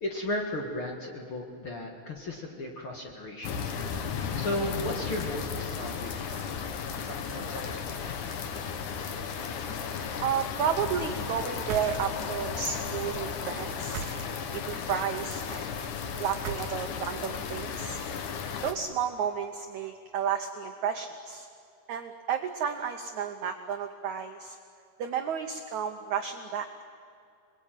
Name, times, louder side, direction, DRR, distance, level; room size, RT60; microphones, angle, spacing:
voice 1, 0.0-3.7 4.4-6.6 7.1-8.1, left 1 dB, 45° left, 1 dB, 1.9 m, -35 dB
sound 1, 3.4-18.7, left 6 dB, 60° left, 2.3 m, -35 dB
voice 2, 10.2-14.0 14.7-15.7 16.2-18.0 18.6-21.5 21.9-24.6 25.0-26.7, right 7 dB, 85° right, 5 dB, 1.6 m, -32 dB
sound 2, 11.6-12.4 13.8-14.6 16.3-17.2, right 8 dB, 70° right, 1.8 m, -39 dB
27.0 x 21.0 x 9.2 m, 2.5 s
omnidirectional pair, 4.9 m